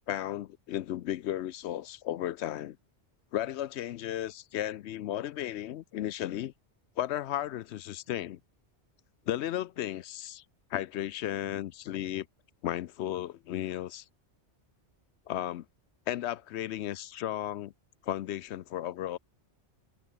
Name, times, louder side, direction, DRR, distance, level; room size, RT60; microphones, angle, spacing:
voice 1, 0.0-2.8 3.3-6.5 7.0-8.4 9.3-10.4 10.7-12.3 12.6-14.0 15.3-15.6 16.1-17.7 18.0-19.2, left 12 dB, 75° left, 0.8 m, -34 dB
omnidirectional pair, 1.2 m